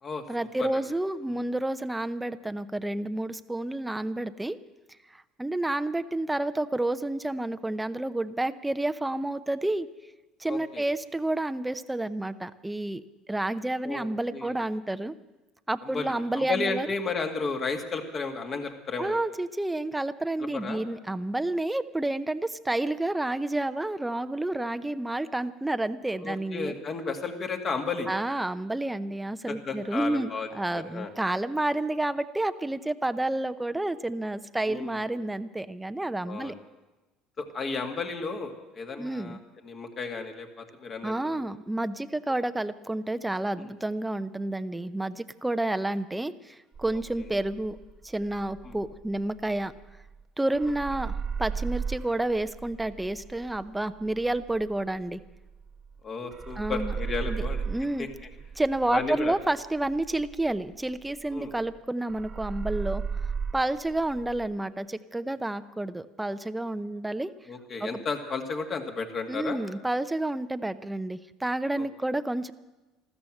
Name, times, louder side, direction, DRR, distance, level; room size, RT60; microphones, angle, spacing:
voice 1, 0.3-4.6 5.1-9.9 10.4-13.0 13.3-15.1 15.7-16.9 19.0-26.7 28.1-30.3 30.5-36.5 39.0-39.4 41.0-47.8 48.0-49.7 50.4-55.2 56.6-56.9 57.3-58.1 58.6-63.0 63.5-67.3 67.8-67.9 69.3-72.5, right 1 dB, 10° right, 11 dB, 0.7 m, -30 dB
voice 2, 10.5-10.9 13.8-14.5 15.8-19.2 20.4-20.8 26.2-28.1 29.5-30.5 30.7-31.1 34.6-35.1 36.3-36.6 37.4-41.4 43.6-43.7 47.2-47.3 48.6-48.8 56.0-57.6 58.0-58.3 58.9-59.3 61.3-61.5 67.5-69.6 71.7-71.8, left 4 dB, 40° left, 4 dB, 2.3 m, -33 dB
sound 1, 46.7-50.2 50.5-56.0 56.3-61.8 62.1-64.5, right 6 dB, 35° right, 1.4 m, -36 dB
13.5 x 13.5 x 7.8 m, 1.1 s
supercardioid pair, 85°, 0 cm